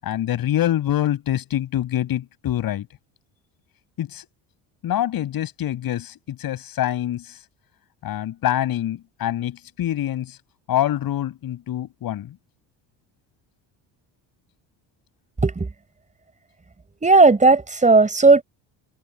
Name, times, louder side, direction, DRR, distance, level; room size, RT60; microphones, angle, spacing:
voice 1, 0.0-2.9 4.0-4.3 4.8-7.4 8.0-10.4 10.7-12.4, left 12 dB, 60° left, 6.6 m, -25 dB
voice 2, 17.0-18.4, right 3 dB, 20° right, 5.1 m, -15 dB
cardioid pair, 110°, 39 cm